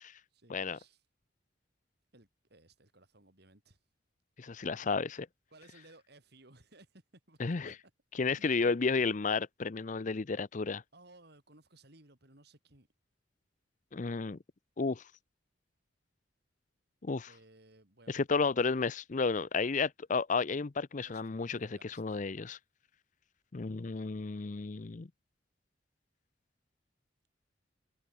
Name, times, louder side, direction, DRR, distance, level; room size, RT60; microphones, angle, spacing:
voice 1, 0.3-1.0 2.1-3.8 5.5-7.4 7.6-7.9 8.4-8.7 10.9-12.9 17.3-18.1 21.0-22.2, right 2 dB, 60° right, 4.3 m, -60 dB
voice 2, 4.4-5.3 7.4-7.7 8.2-10.8 13.9-14.4 14.8-15.0 17.0-17.3 18.1-22.6 23.5-25.1, left 4 dB, 40° left, 0.6 m, -32 dB
head